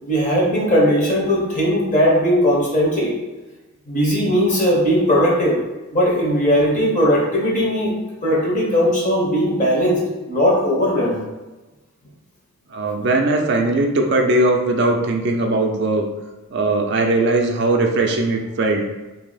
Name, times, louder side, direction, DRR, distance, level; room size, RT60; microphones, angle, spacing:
voice 1, 0.0-3.2 3.9-5.6 5.9-7.9 8.2-11.2, equal, 35° left, -4 dB, 0.8 m, -18 dB
voice 2, 12.7-16.0 16.5-18.8, right 2 dB, 50° right, 3 dB, 0.4 m, -19 dB
2.8 x 2.7 x 3.9 m, 1.1 s
head